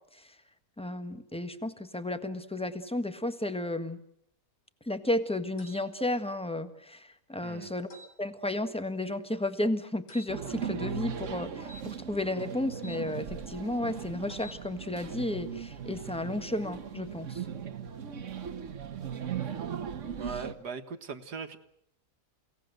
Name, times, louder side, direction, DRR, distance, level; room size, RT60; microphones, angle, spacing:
voice 1, 0.8-4.0 4.8-7.9 8.2-17.4, left 1 dB, 5° left, 9 dB, 1.4 m, -33 dB
sound 1, 5.6-5.8 7.9-8.1 10.1-10.3 11.6-13.0 14.3-14.6, left 1 dB, 60° left, 3.4 m, -50 dB
sound 2, 10.3-20.5, right 7 dB, 55° right, 1.4 m, -38 dB
voice 2, 20.1-21.6, right 5 dB, 85° right, 8 dB, 2.1 m, -39 dB
29.5 x 17.5 x 7.9 m, 0.74 s
omnidirectional pair, 1.7 m